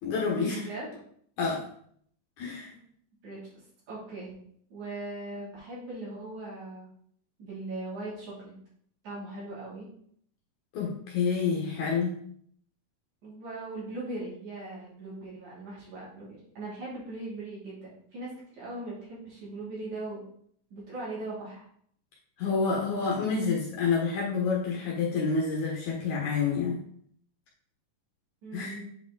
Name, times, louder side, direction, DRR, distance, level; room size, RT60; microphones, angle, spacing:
voice 1, 0.0-0.7 1.4-1.6 2.4-2.7 10.7-12.1 22.4-26.8 28.5-28.8, left 5 dB, 65° left, -3 dB, 2.3 m, -28 dB
voice 2, 0.6-1.0 3.2-3.4 3.9-4.3 4.7-6.9 7.4-8.5 9.0-9.9 13.2-20.2 20.7-21.7 28.4-28.9, right 2 dB, 55° right, -7 dB, 4.1 m, -39 dB
8.4 x 4.8 x 3.9 m, 0.64 s
omnidirectional pair, 4.2 m